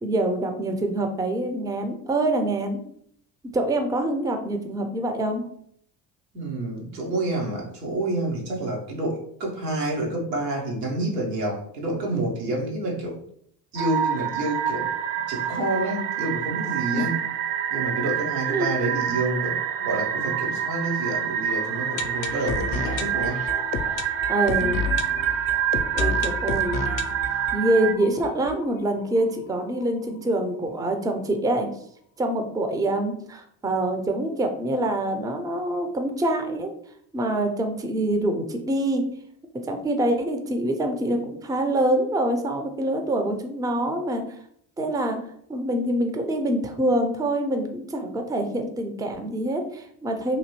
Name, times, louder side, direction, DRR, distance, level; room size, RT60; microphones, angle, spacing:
voice 1, 0.0-2.8 3.5-5.4 17.0-17.1 18.5-18.7 24.3-24.8 25.9-26.8 27.5-31.7 32.2-36.7 37.1-39.0 39.7-44.4 44.8-45.2 45.5-50.4, right 1 dB, 10° right, 5 dB, 0.4 m, -25 dB
voice 2, 6.3-13.2 13.7-14.9 15.3-17.1 17.7-23.4, right 2 dB, 90° right, -2 dB, 0.9 m, -28 dB
sound 1, 13.8-27.9, right 10 dB, 60° right, 0.5 m, -27 dB
sound 2, 21.5-29.2 29.5-29.6 29.8-29.9 30.4-30.5, left 5 dB, 45° left, 0.5 m, -31 dB
2.9 x 2.6 x 2.9 m, 0.67 s
hypercardioid pair, 50°, 47 cm